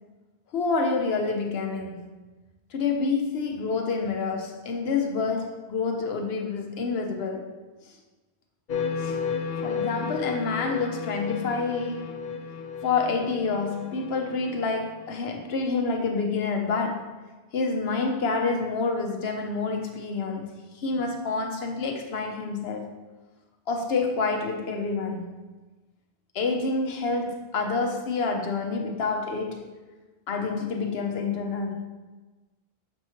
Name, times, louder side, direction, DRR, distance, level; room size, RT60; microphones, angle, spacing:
voice 1, 0.5-2.1 2.7-7.6 7.8-7.9 9.0-9.2 9.6-12.2 12.8-17.2 17.5-23.0 23.7-25.3 26.3-29.7 30.3-31.8, left 4 dB, 75° left, 1.0 m, -28 dB
sound 1, 8.7-15.4, left 6 dB, 55° left, 0.7 m, -33 dB
6.5 x 3.0 x 5.6 m
omnidirectional pair, 1.1 m